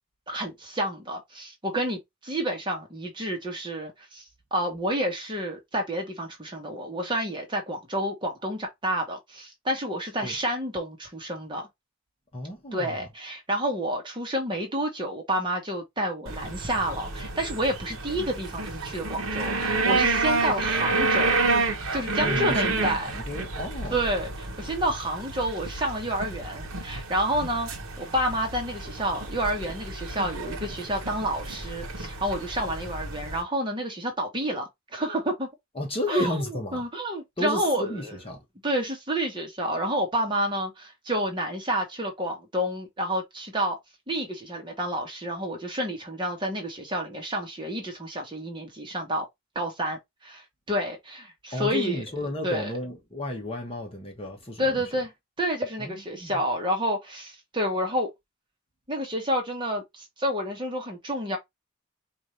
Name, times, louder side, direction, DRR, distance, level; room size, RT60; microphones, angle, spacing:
voice 1, 0.3-4.2 4.5-11.7 12.7-21.4 21.9-23.1 23.9-27.7 28.0-35.5 36.1-36.3 36.7-38.1 38.6-43.8 44.1-49.3 49.5-52.0 52.4-52.7 54.6-55.1 55.4-58.1 58.9-61.4, right 1 dB, 20° right, 1.2 m, -29 dB
voice 2, 12.3-13.1 22.2-23.9 35.7-36.9 37.4-38.4 51.5-54.8 55.8-56.4, left 1 dB, 25° left, 1.1 m, -32 dB
sound 1, 16.3-33.4, right 3 dB, 80° right, 1.1 m, -30 dB
4.4 x 2.6 x 3.2 m
head